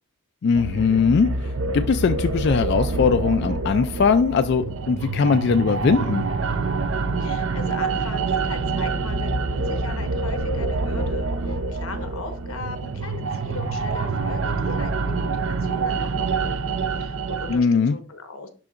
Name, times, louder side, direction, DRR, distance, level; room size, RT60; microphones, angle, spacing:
voice 1, 0.4-1.3 1.7-6.2 17.5-18.0, left 5 dB, 55° left, 9 dB, 0.3 m, -20 dB
sound 1, 0.6-17.6, right 3 dB, 65° right, 0.6 m, -26 dB
voice 2, 6.9-16.6 17.0-18.5, left 3 dB, 90° left, 7 dB, 1.2 m, -38 dB
11.0 x 3.8 x 2.5 m, 0.40 s
head